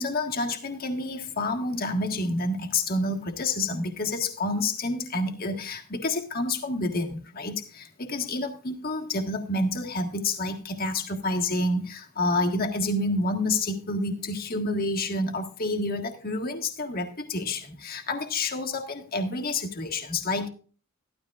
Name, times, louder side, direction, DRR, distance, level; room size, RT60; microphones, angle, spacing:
voice 1, 0.0-20.5, left 2 dB, 45° left, 4 dB, 1.6 m, -28 dB
14.0 x 12.5 x 2.4 m, 0.39 s
head